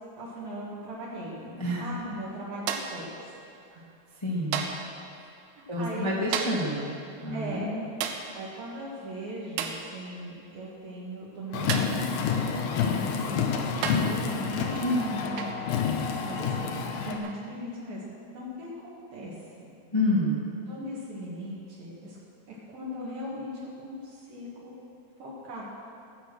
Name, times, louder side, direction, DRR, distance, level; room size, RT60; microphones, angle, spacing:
voice 1, 0.2-3.1 3.7-3.8 5.1-5.3 5.6-6.5 7.3-7.7 8.3-15.6 15.9-18.0 18.3-19.4 20.7-22.2 22.5-24.7 25.2-25.7, equal, 70° right, -8 dB, 3.7 m, -39 dB
sound 1, 2.7-3.1 4.5-4.9 6.3-6.7 8.0-8.3 9.6-9.9 11.7-12.0 13.1-13.2 13.8-14.2 15.4-15.6 17.2-17.4, right 7 dB, 85° right, 2.9 m, -32 dB
voice 2, 4.2-4.6 5.7-6.9 7.2-7.9 14.8-15.1 19.9-20.4, left 1 dB, 15° left, -5 dB, 1.1 m, -28 dB
Car, 11.5-17.2, left 6 dB, 80° left, 2.8 m, -29 dB
18.0 x 8.3 x 6.3 m, 2.6 s
omnidirectional pair, 4.5 m